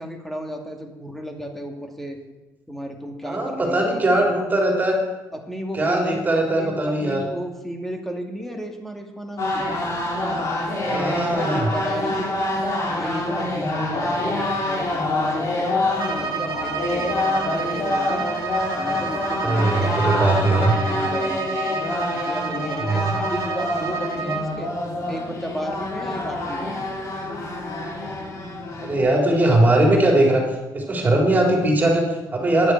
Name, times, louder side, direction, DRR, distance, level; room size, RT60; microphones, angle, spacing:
voice 1, 0.0-2.2 2.7-4.3 5.3-9.7 10.8-12.4 12.9-18.3 18.7-24.7 25.1-26.8 29.1-29.3, equal, 5° left, 3 dB, 2.2 m, -34 dB
voice 2, 3.2-5.0 5.7-7.3 10.8-11.7 19.4-20.7 22.8-23.1 28.8-30.4 30.7-32.7, right 1 dB, 25° right, 0 dB, 3.8 m, -20 dB
sound 1, 9.4-29.0, left 2 dB, 50° left, 3.6 m, -26 dB
Bowed string instrument, 15.9-24.5, right 5 dB, 60° right, 2.4 m, -30 dB
10.5 x 8.0 x 8.3 m, 1.1 s
cardioid pair, 110°, 7 cm